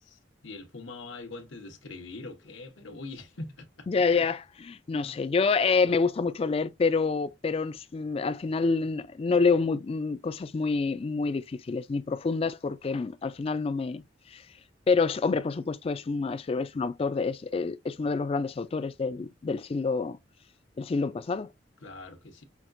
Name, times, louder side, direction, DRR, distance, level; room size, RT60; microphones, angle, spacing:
voice 1, 0.0-3.9 5.0-5.1 21.8-22.4, left 2 dB, 90° left, 1.0 m, -43 dB
voice 2, 3.9-14.0 14.3-14.4 14.9-20.2 20.8-21.5, left 4 dB, 30° left, 0.3 m, -27 dB
5.8 x 2.3 x 2.5 m
head